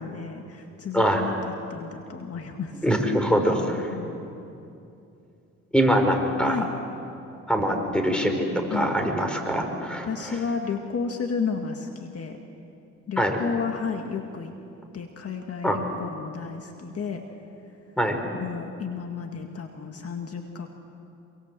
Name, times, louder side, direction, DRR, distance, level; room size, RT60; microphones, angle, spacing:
voice 1, 0.0-2.9 3.9-4.3 6.4-6.7 8.7-8.9 10.0-12.4 13.1-14.5 14.9-17.2 18.3-20.7, left 5 dB, 50° left, 4 dB, 2.0 m, -32 dB
voice 2, 2.8-3.9 5.7-6.5 7.5-10.4 13.2-13.4 15.6-15.8 18.0-18.2, equal, 5° left, 4 dB, 4.8 m, -23 dB
27.0 x 24.0 x 7.6 m, 2.7 s
cardioid pair, 90°, 30 cm